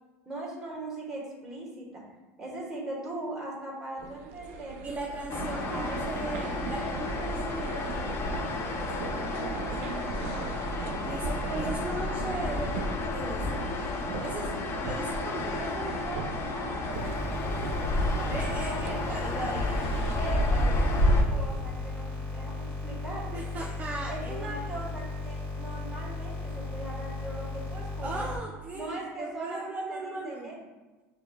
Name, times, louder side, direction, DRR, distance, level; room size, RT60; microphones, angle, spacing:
voice 1, 0.2-2.0 2.4-5.1 5.7-6.0 15.5-18.3 18.6-18.7 19.4-19.5 20.2-20.5 20.8-22.0 22.3-23.4 24.1-28.3 28.7-30.5, right 2 dB, 5° right, -4 dB, 1.3 m, -40 dB
sound 1, 4.0-20.7, right 5 dB, 80° right, 0.3 m, -39 dB
voice 2, 4.8-9.9 11.0-12.8 13.1-13.7 14.2-14.5 14.8-15.7 18.3-21.7 23.3-24.9 28.0-30.7, right 2 dB, 20° right, -3 dB, 0.5 m, -38 dB
sound 2, 5.3-21.2, left 2 dB, 35° left, 0.5 m, -30 dB
sound 3, 16.9-28.4, left 2 dB, 15° left, 1.2 m, -36 dB
6.3 x 2.6 x 2.3 m, 1.2 s
supercardioid pair, 120°, 7 cm